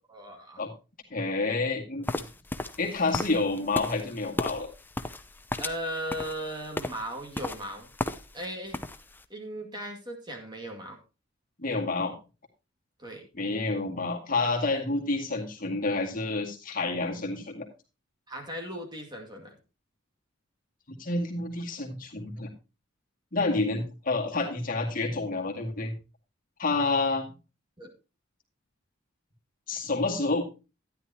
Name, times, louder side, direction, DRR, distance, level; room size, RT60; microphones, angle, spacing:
voice 1, 0.1-0.7 5.6-7.9 8.3-8.8 9.3-11.0 13.0-13.3 18.3-19.6 27.8-27.9, equal, 20° right, 2 dB, 2.1 m, -37 dB
voice 2, 1.1-2.2 2.8-4.7 11.6-12.1 13.3-17.7 21.0-22.5 23.3-25.9 26.6-27.3 29.7-30.4, left 3 dB, 45° left, 1 dB, 2.1 m, -29 dB
sound 1, 2.1-8.5 8.7-9.2, left 1 dB, 10° left, 0.6 m, -35 dB
13.0 x 10.0 x 2.8 m, 0.30 s
head